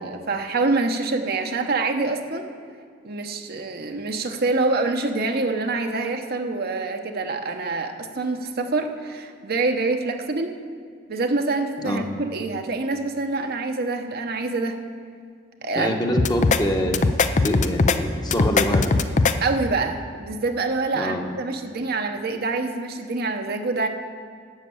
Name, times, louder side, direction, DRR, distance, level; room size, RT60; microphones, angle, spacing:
voice 1, 0.0-2.5 3.0-10.5 11.1-14.8 15.6-15.9 19.4-23.9, right 3 dB, 55° right, 4 dB, 1.0 m, -26 dB
voice 2, 15.7-16.9 17.4-18.9 20.9-21.2, equal, 20° left, 2 dB, 1.2 m, -25 dB
sound 1, 16.2-16.6 16.9-18.0 18.3-19.3, left 3 dB, 40° left, 0.5 m, -19 dB
12.0 x 7.4 x 8.7 m, 2.1 s
head